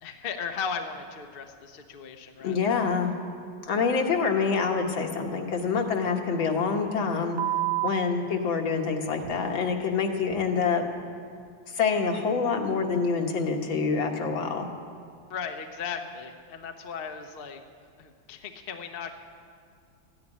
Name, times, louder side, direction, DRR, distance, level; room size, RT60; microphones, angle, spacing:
voice 1, 0.0-2.7 15.3-17.6 18.0-19.1, left 6 dB, 45° left, 5 dB, 0.7 m, -36 dB
voice 2, 2.4-3.1 3.6-7.4 7.8-10.8 11.7-14.7, left 5 dB, 75° left, 2 dB, 2.1 m, -26 dB
sound 1, 5.5-5.6 6.0-6.1 7.4-7.9 9.0-9.5 10.3-10.4, right 14 dB, 80° right, 1.4 m, -29 dB
14.0 x 10.5 x 9.9 m, 2.2 s
omnidirectional pair, 2.2 m